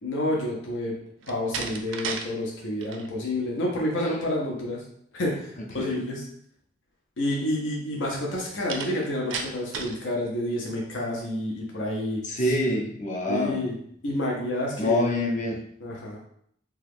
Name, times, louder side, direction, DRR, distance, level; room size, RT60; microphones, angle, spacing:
voice 1, 0.0-1.0 1.3-4.8 5.1-6.3 7.2-12.5 13.3-13.7 14.0-15.0 15.8-16.2, left 1 dB, 75° left, -2 dB, 0.7 m, -29 dB
Slam, 1.2-2.3 2.6-3.1 8.7-10.0, right 5 dB, 80° right, 0.4 m, -34 dB
voice 2, 12.2-13.7 14.8-15.6, left 1 dB, 40° left, 0 dB, 0.6 m, -26 dB
2.9 x 2.3 x 3.4 m, 0.66 s
head